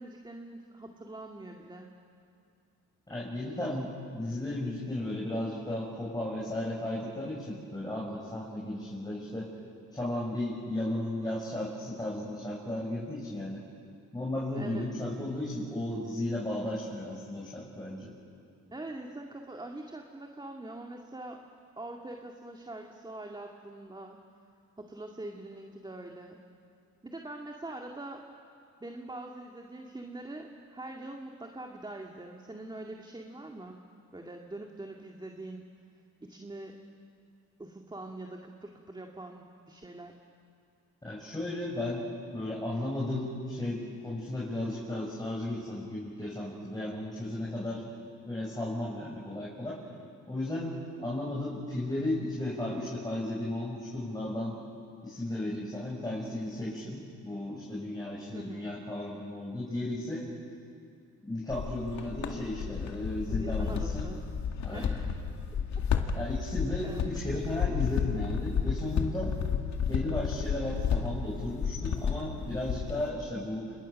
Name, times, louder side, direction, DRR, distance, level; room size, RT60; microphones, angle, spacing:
voice 1, 0.0-1.9 14.6-14.9 18.7-21.4 21.8-24.2 24.8-26.4 27.0-28.2 28.8-33.8 34.1-35.7 36.2-36.7 37.6-40.2 58.3-58.7 63.3-64.2 64.7-65.1 66.8-67.1, right 2 dB, 15° right, 2 dB, 2.1 m, -43 dB
voice 2, 3.1-9.5 9.9-13.6 14.1-18.1 41.0-47.8 48.3-49.8 50.3-54.6 55.0-60.3 61.2-64.1 64.6-65.0 66.1-69.3 69.8-73.7, left 1 dB, 15° left, -5 dB, 6.5 m, -34 dB
sound 1, 61.5-73.1, left 7 dB, 65° left, 2.2 m, -32 dB
29.0 x 28.0 x 6.5 m, 2.4 s
cardioid pair, 90°, 30 cm